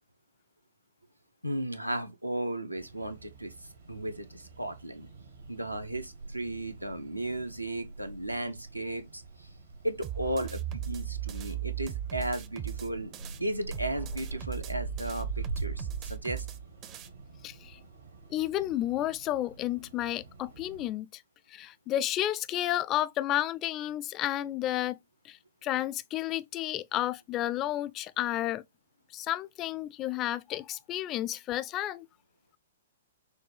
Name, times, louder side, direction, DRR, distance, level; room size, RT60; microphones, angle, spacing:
voice 1, 1.4-3.5 3.9-5.1 5.5-9.2 9.8-13.1 13.4-16.5, right 1 dB, 85° right, 0.6 m, -35 dB
sound 1, 2.8-20.9, right 3 dB, 70° right, 1.2 m, -45 dB
sound 2, 10.0-13.4 13.7-17.1, right 11 dB, 30° right, 0.5 m, -37 dB
voice 2, 17.4-17.8 18.3-21.2 21.5-25.0 25.2-28.6 29.1-32.1, left 13 dB, 25° left, 0.3 m, -31 dB
6.2 x 2.2 x 3.2 m
figure-of-eight pair, 110°, 0 cm